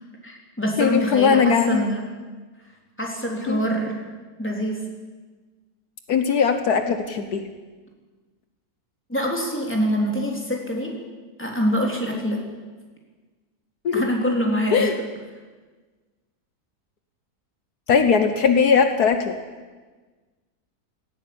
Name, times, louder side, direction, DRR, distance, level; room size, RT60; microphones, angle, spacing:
voice 1, 0.2-2.0 3.0-4.0 4.4-4.8 9.1-10.9 11.4-12.4 13.9-14.9, equal, 5° left, 0 dB, 3.7 m, -25 dB
voice 2, 0.8-1.9 3.5-3.7 6.1-7.4 12.1-12.2 13.8-14.1 14.7-14.9 17.9-19.4, left 6 dB, 75° left, 8 dB, 1.6 m, -19 dB
17.5 x 17.0 x 8.8 m, 1.3 s
omnidirectional pair, 1.7 m